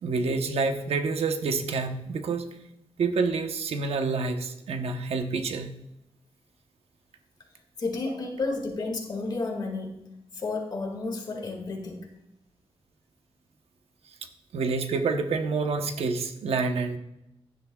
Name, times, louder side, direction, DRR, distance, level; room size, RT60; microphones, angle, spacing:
voice 1, 0.0-2.5 3.0-5.7 14.5-17.0, right 4 dB, 90° right, 6 dB, 1.0 m, -28 dB
voice 2, 7.8-12.1, left 3 dB, 45° left, 2 dB, 2.1 m, -32 dB
16.0 x 11.0 x 2.4 m, 0.85 s
wide cardioid pair, 175°, 10 cm